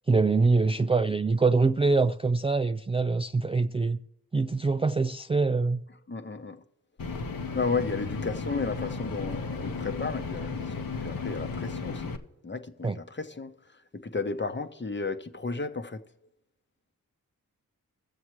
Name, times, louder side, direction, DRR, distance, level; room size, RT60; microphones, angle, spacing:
voice 1, 0.1-4.0 4.3-5.8 12.8-13.0, right 3 dB, 15° right, 0.3 m, -24 dB
voice 2, 6.1-6.6 7.5-12.0 12.4-13.5 13.9-16.0, left 4 dB, 30° left, 0.9 m, -33 dB
sound 1, 7.0-12.2, left 4 dB, 70° left, 1.1 m, -34 dB
20.5 x 7.1 x 3.1 m
cardioid pair, 45°, 36 cm